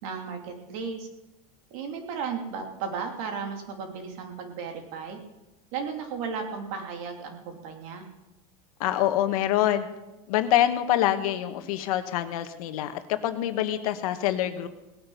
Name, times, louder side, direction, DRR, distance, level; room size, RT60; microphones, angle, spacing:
voice 1, 0.0-1.1 1.7-5.2 5.7-8.0, right 5 dB, 70° right, 3 dB, 2.9 m, -35 dB
voice 2, 8.8-9.9 10.3-14.7, left 12 dB, 80° left, 9 dB, 1.3 m, -25 dB
18.5 x 9.2 x 5.6 m, 1.0 s
supercardioid pair, 140°, 18 cm